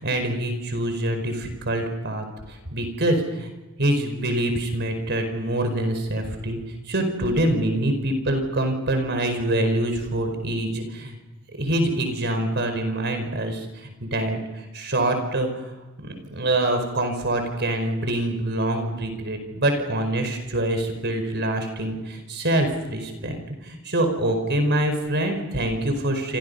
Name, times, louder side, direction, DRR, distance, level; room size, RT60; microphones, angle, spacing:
voice 1, 0.0-3.5 3.8-6.6 6.9-11.2 11.6-15.7 16.0-26.4, right 1 dB, 55° right, 6 dB, 5.0 m, -25 dB
28.0 x 27.5 x 5.5 m, 1.1 s
head